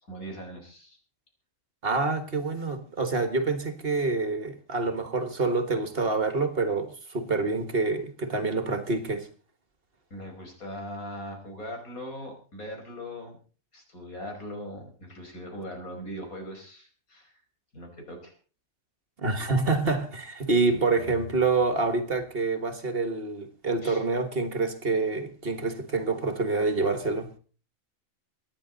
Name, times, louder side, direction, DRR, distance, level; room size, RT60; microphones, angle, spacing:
voice 1, 0.1-1.0 10.1-13.4 13.7-17.4 17.7-18.3 23.8-24.0, equal, 85° left, 5.2 m, -40 dB
voice 2, 1.8-9.3 19.2-27.3, right 3 dB, 45° right, 1.7 m, -27 dB
24.0 x 10.0 x 4.0 m
omnidirectional pair, 1.5 m